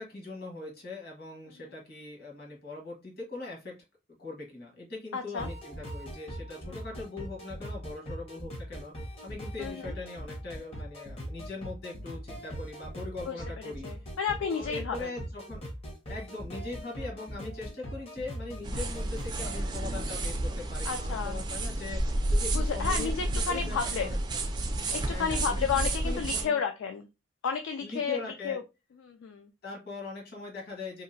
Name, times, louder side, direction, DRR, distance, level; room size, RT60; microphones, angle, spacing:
voice 1, 0.0-3.8 4.2-8.9 9.2-14.1 14.4-15.6 16.1-24.4 25.1-26.6 27.8-28.6 29.6-31.0, left 3 dB, 50° left, -1 dB, 1.2 m, -41 dB
voice 2, 5.1-5.5 9.6-9.9 13.3-13.4 13.6-15.1 20.9-21.4 22.5-24.1 24.9-27.1 27.4-28.2 28.4-28.6 29.0-29.5, left 6 dB, 70° left, 6 dB, 0.3 m, -32 dB
sound 1, 5.4-19.6, equal, 30° left, 0.6 m, -41 dB
sound 2, 18.6-26.5, right 1 dB, 20° right, 0.3 m, -31 dB
2.8 x 2.4 x 2.5 m, 0.26 s
head